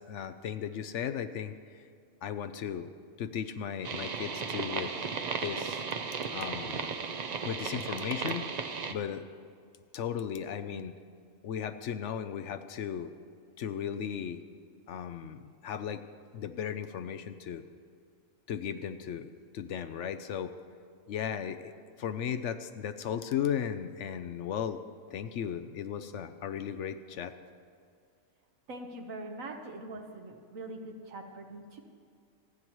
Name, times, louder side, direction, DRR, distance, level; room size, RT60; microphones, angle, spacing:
voice 1, 0.1-1.8 2.2-2.9 3.2-4.9 5.4-5.8 6.3-6.9 7.5-8.6 8.9-9.3 9.9-11.0 11.4-13.1 13.6-14.4 14.9-16.0 16.3-17.6 18.5-19.3 19.5-20.5 21.1-21.7 22.0-24.8 25.1-27.3, left 8 dB, 70° left, 10 dB, 0.8 m, -36 dB
sound 1, 3.8-8.9, right 5 dB, 50° right, 0.5 m, -35 dB
voice 2, 28.7-31.8, right 2 dB, 75° right, 4 dB, 1.5 m, -43 dB
27.5 x 9.5 x 3.0 m, 2.2 s
omnidirectional pair, 1.4 m